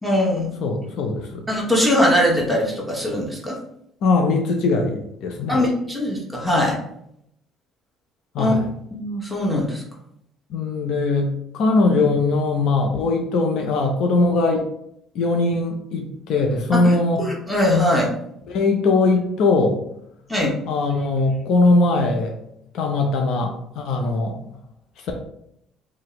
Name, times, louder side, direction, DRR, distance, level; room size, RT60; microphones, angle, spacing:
voice 1, 0.0-0.6 1.5-3.6 5.5-6.8 8.4-8.6 8.9-9.8 16.7-18.1 20.3-20.5, left 1 dB, ahead, -3 dB, 1.2 m, -21 dB
voice 2, 0.6-1.4 4.0-5.6 8.3-8.7 10.5-14.6 15.1-17.2 18.5-19.8 20.7-22.3 22.7-24.4, left 3 dB, 70° left, 2 dB, 0.5 m, -20 dB
2.7 x 2.1 x 4.0 m, 0.74 s
supercardioid pair, 65°, 0 cm